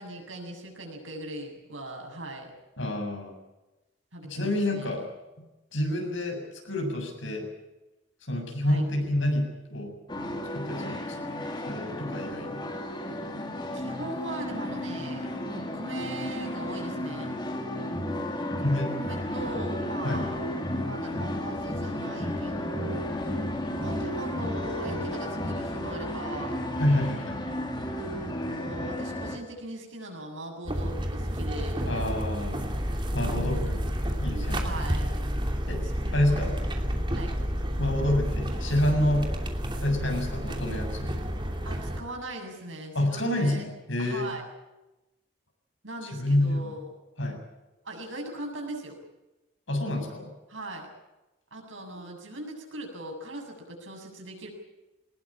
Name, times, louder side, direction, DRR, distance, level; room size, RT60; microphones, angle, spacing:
voice 1, 0.0-2.5 4.1-5.0 8.6-8.8 13.7-17.3 19.0-20.3 20.8-23.1 23.7-26.7 27.9-31.9 33.2-33.4 34.0-35.1 35.8-36.6 37.0-37.3 41.6-43.6 44.0-44.4 45.8-46.9 47.8-49.0 50.5-50.9 51.5-54.5, right 1 dB, 80° right, 2 dB, 7.4 m, -40 dB
voice 2, 2.8-3.4 4.2-5.1 5.7-7.5 8.3-10.0 10.5-12.7 18.5-19.0 20.0-20.2 26.8-27.4 31.9-32.7 33.1-33.8 34.2-34.8 35.7-36.5 37.8-39.3 39.8-41.2 42.9-44.3 46.0-46.8 47.2-47.5 49.7-50.3, left 1 dB, 75° left, 3 dB, 7.2 m, -28 dB
sound 1, 10.1-29.4, left 1 dB, 20° left, 2.7 m, -33 dB
sound 2, 30.7-42.0, equal, 25° right, 2.8 m, -30 dB
22.5 x 20.0 x 8.8 m, 1.0 s
head